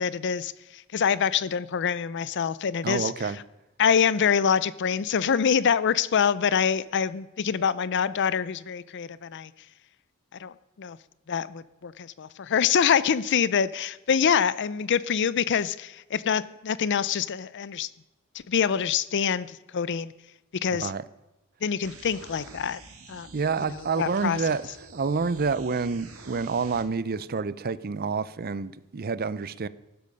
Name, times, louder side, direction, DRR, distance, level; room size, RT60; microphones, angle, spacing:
voice 1, 0.0-3.1 3.8-9.5 10.4-11.0 11.3-17.9 18.5-20.1 20.6-20.9 21.6-22.8 23.1-23.3 24.0-24.4, left 7 dB, 55° left, 0.5 m, -25 dB
voice 2, 2.8-3.4 20.7-21.0 23.3-29.7, right 4 dB, 45° right, 0.5 m, -28 dB
sound 1, 21.8-26.8, right 3 dB, 75° right, 2.0 m, -47 dB
15.5 x 12.0 x 5.4 m
head